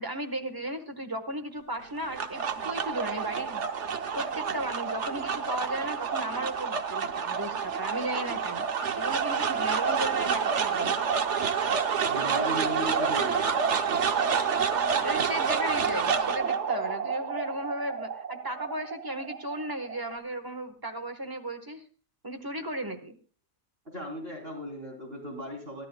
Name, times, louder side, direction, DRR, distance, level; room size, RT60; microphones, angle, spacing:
voice 1, 0.0-3.6 4.1-8.7 8.9-11.0 15.0-21.8 22.2-23.1, right 1 dB, 15° right, 7 dB, 1.3 m, -35 dB
sound 1, 1.8-20.2, right 6 dB, 60° right, 1.2 m, -29 dB
voice 2, 12.1-13.6 23.9-25.8, equal, 45° right, 1 dB, 3.7 m, -36 dB
24.0 x 12.0 x 2.3 m, 0.39 s
omnidirectional pair, 1.4 m